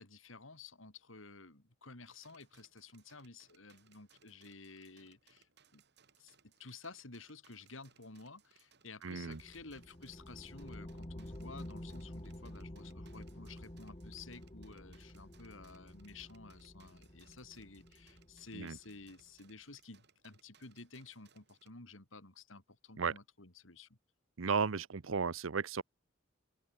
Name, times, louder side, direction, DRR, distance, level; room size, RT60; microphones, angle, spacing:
voice 1, 0.0-5.8 6.2-24.0, left 3 dB, 75° left, 3.4 m, -53 dB
sound 1, 2.1-21.7, right 7 dB, 60° right, 5.1 m, -69 dB
voice 2, 9.0-9.4 18.5-18.8 23.0-23.1 24.4-25.8, right 5 dB, 80° right, 0.7 m, -34 dB
sound 2, 9.2-19.2, left 1 dB, 25° left, 1.8 m, -50 dB
open air
head